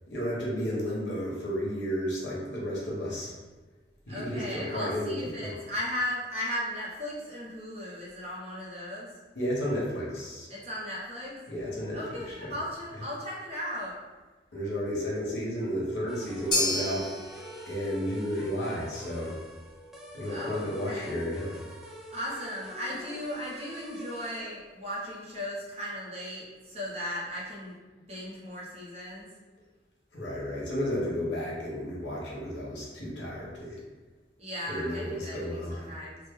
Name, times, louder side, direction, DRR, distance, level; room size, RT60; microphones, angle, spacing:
voice 1, 0.1-3.3 4.1-5.6 9.3-10.5 11.5-12.5 14.5-17.1 17.6-19.4 20.1-21.6 30.1-33.8 34.7-35.9, equal, 70° left, -5 dB, 1.0 m, -32 dB
voice 2, 4.1-9.1 10.5-11.4 11.9-14.0 20.3-21.2 22.1-27.8 28.1-29.3 34.4-36.2, equal, 35° right, -5 dB, 0.9 m, -36 dB
sound 1, 16.1-24.4, equal, ahead, 0.3 m, -47 dB
sound 2, 16.5-24.9, left 2 dB, 25° left, 0.7 m, -37 dB
3.4 x 2.0 x 3.5 m, 1.3 s
head